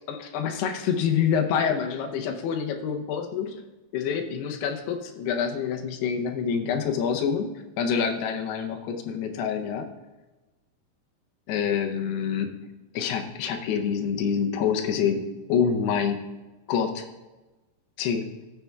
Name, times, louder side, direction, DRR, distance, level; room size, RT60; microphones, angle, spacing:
voice 1, 0.1-3.6 3.9-7.5 7.8-9.9 11.5-12.5 12.9-16.3 16.7-17.0 18.0-18.3, left 7 dB, 80° left, 5 dB, 2.7 m, -26 dB
13.0 x 6.9 x 2.3 m, 1.1 s
omnidirectional pair, 4.7 m